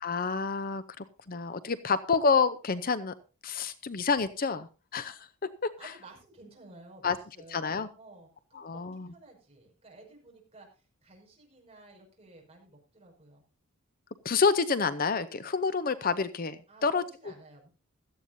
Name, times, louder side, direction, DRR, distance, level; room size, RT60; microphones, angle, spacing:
voice 1, 0.0-3.1 3.4-5.3 5.6-5.9 7.0-7.2 7.5-7.9 8.5-9.1 14.2-17.0, left 5 dB, 40° left, 13 dB, 0.7 m, -28 dB
voice 2, 5.8-13.4 16.7-17.7, right 2 dB, 25° right, 0 dB, 5.9 m, -54 dB
16.5 x 13.5 x 2.7 m, 0.33 s
head